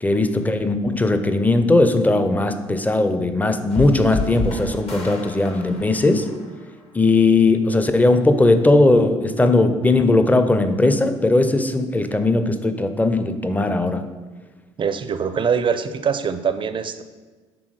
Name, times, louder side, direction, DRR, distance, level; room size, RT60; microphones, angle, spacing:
voice 1, 0.0-6.3 6.9-14.1, left 2 dB, 10° left, 8 dB, 0.6 m, -18 dB
sound 1, 3.7-6.9, left 3 dB, 45° left, 1.2 m, -30 dB
voice 2, 14.8-17.0, right 6 dB, 35° right, 11 dB, 0.5 m, -23 dB
6.1 x 3.5 x 4.8 m, 1.3 s
hypercardioid pair, 60°, 14 cm